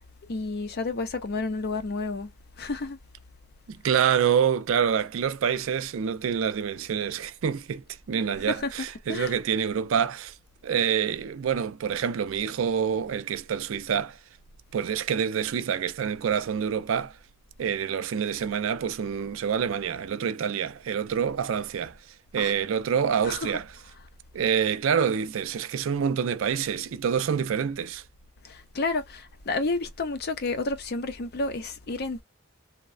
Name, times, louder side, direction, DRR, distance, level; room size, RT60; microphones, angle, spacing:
voice 1, 0.3-2.3 2.6-3.0 3.9-4.0 8.4-9.4 22.4-22.5 23.2-23.6 28.4-32.2, left 3 dB, 50° left, 0.6 m, -31 dB
voice 2, 3.7-10.4 10.6-14.2 14.7-17.2 17.6-22.0 22.3-23.7 24.3-28.0, right 7 dB, 65° right, 0.4 m, -27 dB
3.1 x 2.1 x 2.3 m
head